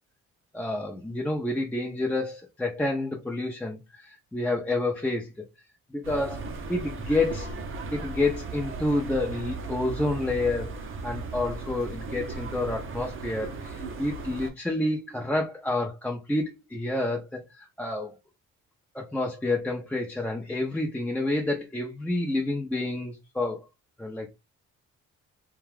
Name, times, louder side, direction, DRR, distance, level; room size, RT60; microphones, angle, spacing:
voice 1, 0.5-5.3 5.9-7.5 7.9-10.7 11.0-18.2 18.9-23.6 24.0-24.3, left 2 dB, 5° left, 0.5 m, -29 dB
sound 1, 6.0-14.5, right 4 dB, 45° right, 0.7 m, -36 dB
2.3 x 2.3 x 3.2 m
cardioid pair, 90°, 30 cm